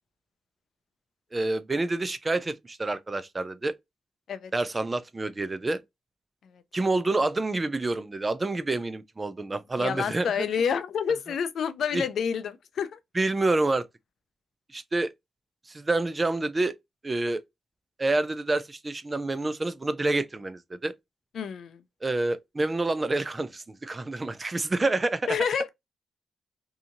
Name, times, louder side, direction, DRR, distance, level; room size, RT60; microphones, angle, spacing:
voice 1, 1.3-3.8 4.5-5.8 6.7-10.4 11.9-12.0 13.1-13.9 14.7-15.1 15.7-16.8 17.0-17.4 18.0-20.9 22.0-25.4, right 2 dB, 25° right, 0.4 m, -28 dB
voice 2, 9.8-13.0 21.3-21.8 25.3-25.7, left 7 dB, 70° left, 0.4 m, -28 dB
2.7 x 2.6 x 2.5 m
cardioid pair, 95°, 0 cm